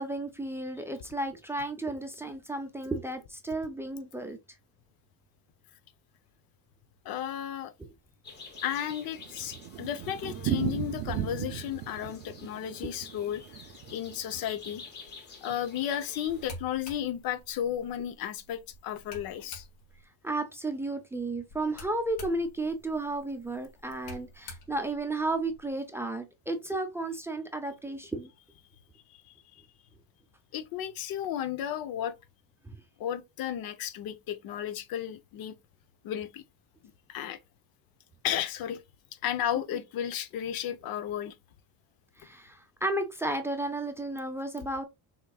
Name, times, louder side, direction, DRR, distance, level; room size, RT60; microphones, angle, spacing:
voice 1, 0.0-4.4 12.8-12.9 20.2-28.3 32.7-32.8 42.2-44.8, right 2 dB, 5° right, 0.6 m, -33 dB
voice 2, 7.0-7.7 8.6-13.4 13.9-15.1 15.4-19.6 29.1-29.2 29.5-29.6 30.5-32.2 33.0-35.5 36.0-36.4 37.1-37.4 38.2-38.8 39.2-41.3, left 10 dB, 65° left, 0.9 m, -33 dB
sound 1, 8.2-16.6, left 4 dB, 25° left, 1.3 m, -49 dB
Thunder, 8.6-14.8 15.1-15.2 15.5-15.6 15.8-15.9 16.5-16.8, right 12 dB, 65° right, 0.6 m, -36 dB
sound 2, 16.3-20.0 21.5-25.7, left 1 dB, 85° left, 2.6 m, -49 dB
6.2 x 3.7 x 2.3 m
cardioid pair, 160°, 38 cm